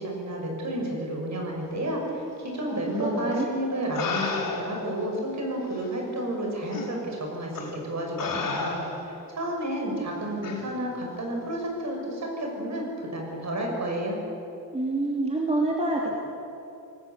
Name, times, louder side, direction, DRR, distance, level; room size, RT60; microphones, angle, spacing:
voice 1, 0.0-14.2, right 1 dB, 45° right, 1 dB, 6.6 m, -31 dB
voice 2, 2.7-3.5 14.7-16.2, right 2 dB, 15° right, -2 dB, 2.7 m, -27 dB
sound 1, 3.3-3.4 4.0-4.9 5.8-5.9 6.7-6.9 7.5-7.8 8.2-9.1 10.4-10.6, left 4 dB, 55° left, 5.2 m, -32 dB
27.0 x 19.0 x 8.4 m, 2.8 s
wide cardioid pair, 150°, 38 cm